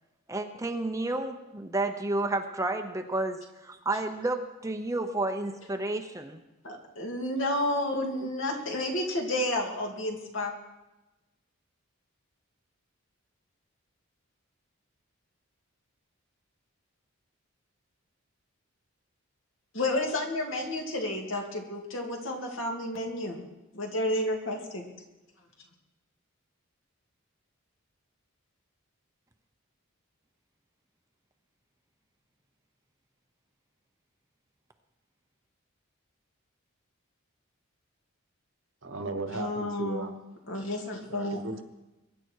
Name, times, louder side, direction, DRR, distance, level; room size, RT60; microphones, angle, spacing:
voice 1, 0.3-6.4 8.2-8.3, right 2 dB, 15° right, 6 dB, 0.8 m, -31 dB
voice 2, 6.6-10.5 19.7-23.4 23.7-24.8 39.3-40.1 40.5-41.4, left 1 dB, 65° left, 1 dB, 2.7 m, -31 dB
voice 3, 38.8-40.1 41.1-41.6, right 3 dB, 60° right, 8 dB, 1.3 m, -36 dB
22.5 x 10.5 x 4.7 m, 1.0 s
head